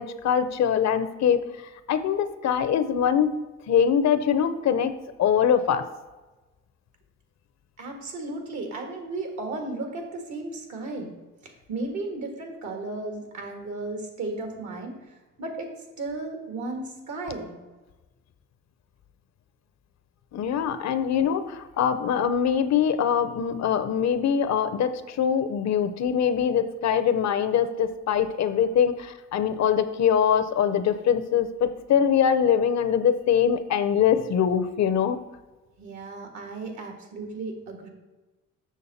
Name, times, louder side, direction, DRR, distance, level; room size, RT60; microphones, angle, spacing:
voice 1, 0.0-3.3 3.7-5.9 20.3-35.2, left 8 dB, 60° left, 11 dB, 0.7 m, -23 dB
voice 2, 7.8-11.1 11.4-14.9 15.4-15.7 16.0-17.5 35.8-37.9, right 2 dB, 70° right, 3 dB, 1.8 m, -34 dB
7.3 x 6.3 x 4.1 m, 1.2 s
cardioid pair, 90°, 30 cm